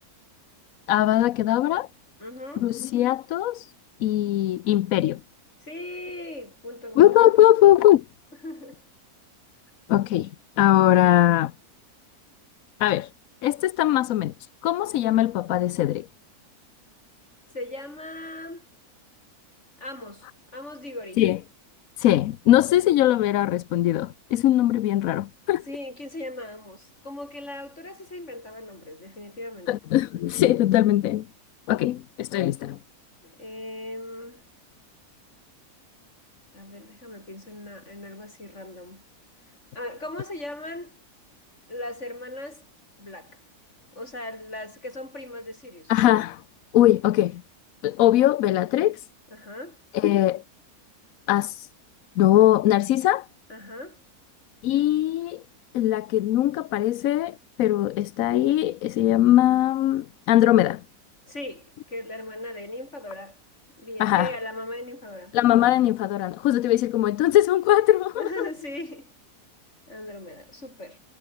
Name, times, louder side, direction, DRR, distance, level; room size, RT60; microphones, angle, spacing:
voice 1, 0.9-1.9 2.6-3.7 4.0-5.2 7.0-8.0 9.9-10.3 10.6-11.5 12.8-13.1 13.4-14.3 14.6-16.1 21.2-21.4 22.0-25.6 29.7-31.2 31.7-32.8 45.9-46.4 46.7-47.4 47.8-49.0 49.9-50.4 51.3-51.7 52.2-53.3 54.6-55.4 55.7-60.8 64.0-64.3 65.3-68.5, left 13 dB, 70° left, 1.0 m, -20 dB
voice 2, 2.2-2.7 5.6-7.2 8.4-8.8 17.5-18.7 19.8-21.2 25.7-29.7 33.2-34.4 36.5-39.0 39.7-41.0 41.7-42.7 43.0-43.4 43.9-45.9 49.3-49.8 53.5-54.0 61.3-63.4 63.8-65.4 68.1-69.1 69.9-71.0, left 1 dB, 50° left, 7.7 m, -38 dB
omnidirectional pair, 1.6 m